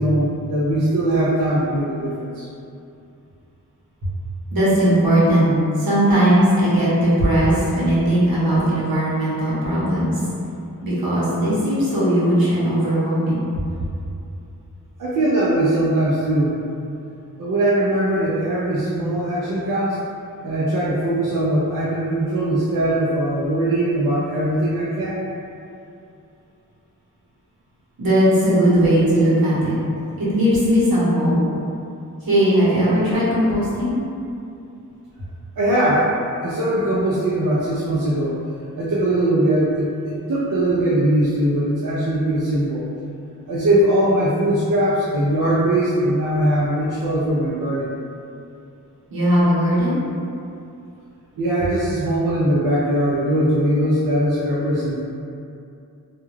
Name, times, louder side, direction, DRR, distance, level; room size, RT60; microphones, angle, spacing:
voice 1, 0.0-2.5 15.0-16.6 17.4-20.0 20.4-25.2 35.6-36.1 36.4-38.4 38.8-42.9 43.5-47.9 51.4-55.0, right 1 dB, 65° right, -7 dB, 0.5 m, -20 dB
voice 2, 4.5-5.5 5.7-10.2 10.8-13.5 28.0-29.7 30.2-31.4 32.2-34.0 49.1-50.0, equal, 85° right, -10 dB, 1.0 m, -18 dB
2.3 x 2.2 x 3.1 m, 2.6 s
wide cardioid pair, 65°, 35 cm